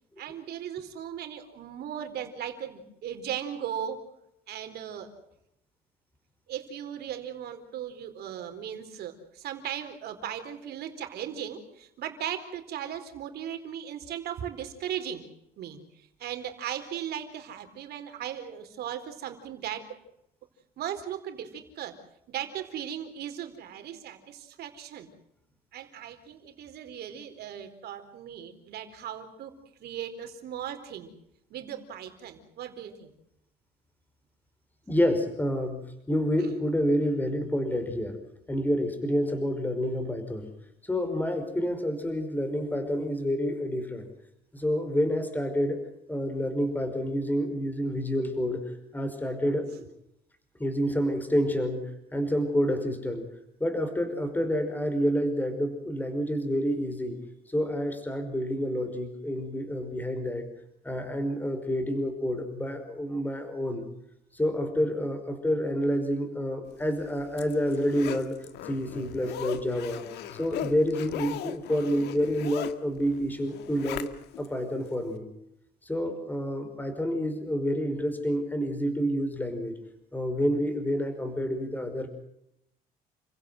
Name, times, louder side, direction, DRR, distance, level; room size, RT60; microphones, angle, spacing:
voice 1, 0.2-4.0 4.5-5.1 6.5-15.2 15.6-20.0 20.8-22.0 22.3-25.1 25.7-29.5 29.8-31.1 31.5-33.1 36.4-36.6, right 9 dB, 70° right, 7 dB, 4.2 m, -37 dB
voice 2, 34.9-35.8 36.1-38.2 38.5-40.5 40.9-44.1 44.5-45.8 46.1-48.6 48.9-49.9 50.6-51.8 52.1-53.2 53.6-57.2 57.5-60.5 60.8-63.9 64.3-68.4 68.6-70.0 70.3-74.1 74.4-75.3 75.9-79.7 80.1-82.1, equal, 10° left, 7 dB, 5.3 m, -28 dB
Zipper (clothing), 66.9-74.5 74.9-75.0, left 12 dB, 85° left, 1.7 m, -39 dB
30.0 x 16.5 x 7.9 m, 0.79 s
cardioid pair, 110°, 17 cm